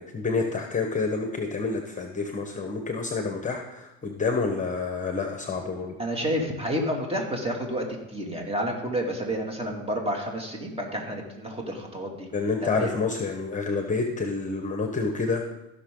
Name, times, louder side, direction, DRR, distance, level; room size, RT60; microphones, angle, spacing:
voice 1, 0.0-5.9 12.3-15.4, left 4 dB, 25° left, 3 dB, 1.3 m, -28 dB
voice 2, 6.0-12.3 12.6-12.9, equal, 20° right, 1 dB, 2.5 m, -30 dB
15.0 x 6.3 x 3.9 m, 1.0 s
supercardioid pair, 90°, 32 cm